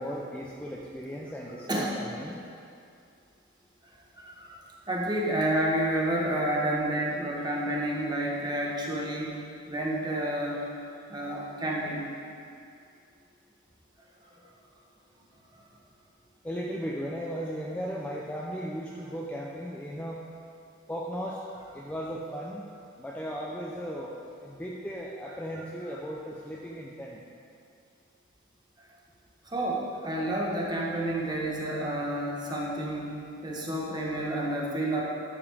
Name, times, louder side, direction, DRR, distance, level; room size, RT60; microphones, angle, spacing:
voice 1, 0.0-2.4 16.4-20.2 20.9-21.4 21.7-22.6 23.0-27.2, equal, 5° left, -4 dB, 0.6 m, -36 dB
voice 2, 4.2-4.6 4.9-10.6 11.1-12.1 14.3-14.4 29.4-35.0, right 1 dB, 20° right, -3 dB, 1.3 m, -30 dB
12.0 x 7.0 x 3.6 m, 2.4 s
head